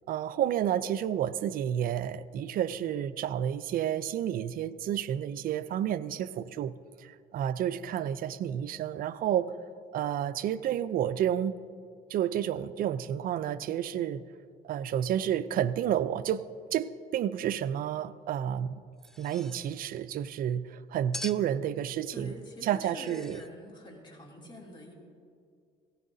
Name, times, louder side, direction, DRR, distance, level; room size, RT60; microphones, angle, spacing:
voice 1, 0.1-6.7 7.0-9.5 9.9-11.6 12.1-14.2 14.6-16.5 16.7-18.8 19.2-22.3 22.6-23.4, right 10 dB, 60° right, 0.5 m, -30 dB
sound 1, 19.0-19.7 21.1-21.5 22.8-23.5, left 1 dB, 5° left, 0.3 m, -42 dB
voice 2, 22.1-24.9, left 1 dB, 30° left, 2.8 m, -46 dB
17.5 x 15.0 x 2.7 m
cardioid pair, 110°, 17 cm